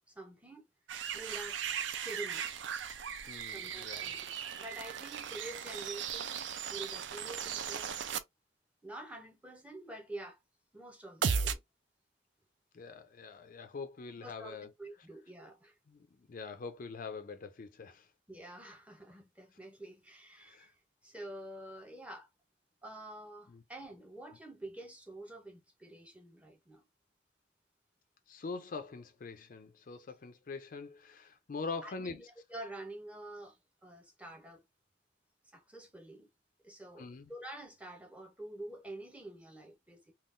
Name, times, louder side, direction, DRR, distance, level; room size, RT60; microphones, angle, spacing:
voice 1, 0.1-0.6 1.1-1.6 2.0-2.4 3.5-8.0 8.8-10.4 10.7-11.6 14.2-15.8 18.3-22.3 22.8-26.8 31.8-32.2 32.5-34.6 35.5-36.3 36.6-40.1, right 1 dB, 5° right, 0.6 m, -48 dB
sound 1, 0.9-8.2 11.2-11.5, right 7 dB, 65° right, 0.4 m, -37 dB
voice 2, 3.3-4.1 12.7-14.7 15.9-18.1 20.4-20.7 23.5-23.6 28.3-32.2 37.0-37.3, left 4 dB, 45° left, 0.4 m, -44 dB
3.6 x 2.3 x 2.4 m
head